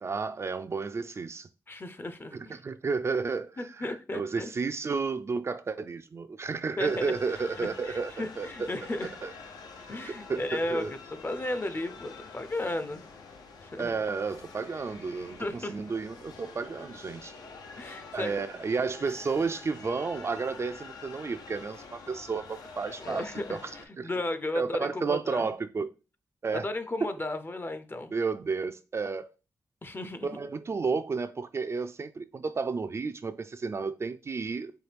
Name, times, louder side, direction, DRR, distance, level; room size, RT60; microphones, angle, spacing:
voice 1, 0.0-1.5 2.3-8.7 9.2-9.3 10.1-10.9 13.8-17.4 18.1-23.7 24.0-24.1 24.5-25.9 26.4-26.7 27.0-27.1 28.1-29.3 30.2-34.7, right 4 dB, 40° right, 0.3 m, -32 dB
voice 2, 1.7-2.3 3.6-4.5 6.8-9.1 9.9-13.1 13.6-13.9 15.4-15.8 17.7-18.3 23.0-23.6 23.9-25.5 26.5-28.1 29.8-30.4, left 1 dB, 30° left, 0.6 m, -34 dB
sound 1, 6.8-23.9, left 4 dB, 85° left, 0.6 m, -47 dB
4.5 x 2.3 x 3.3 m
cardioid pair, 55°, 7 cm